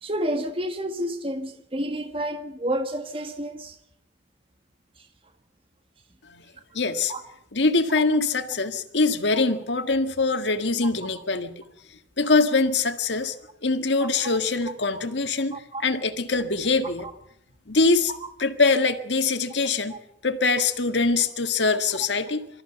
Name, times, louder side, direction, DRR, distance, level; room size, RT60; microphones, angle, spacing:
voice 1, 0.0-3.8 7.1-7.2 14.0-14.4 14.9-15.0 15.5-15.8 19.9-20.0, right 1 dB, 30° right, 1.5 m, -30 dB
voice 2, 6.7-7.1 7.5-11.5 12.2-13.4 13.6-17.1 17.7-18.1 18.4-20.0 20.2-22.5, left 3 dB, 80° left, 1.7 m, -23 dB
25.0 x 14.0 x 8.0 m
head